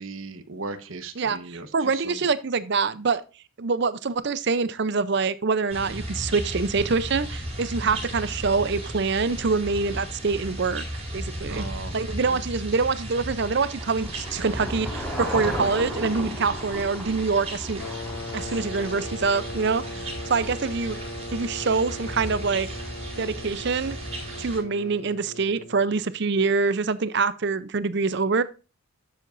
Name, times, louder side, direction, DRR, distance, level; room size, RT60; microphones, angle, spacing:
voice 1, 0.0-2.2 7.8-8.0 11.5-12.4 20.0-20.1, right 3 dB, 70° right, 1.1 m, -38 dB
voice 2, 1.7-3.2 3.6-10.8 11.1-11.7 11.9-17.8 18.3-21.0 21.3-22.7 23.2-24.0 24.4-28.4, right 4 dB, 55° right, 0.6 m, -25 dB
sound 1, 5.7-24.6, right 1 dB, 30° right, 5.4 m, -35 dB
Car passing by / Engine, 12.7-19.2, equal, 5° left, 5.4 m, -35 dB
sound 2, 17.8-26.2, left 1 dB, 80° left, 0.8 m, -39 dB
12.0 x 7.6 x 2.6 m
head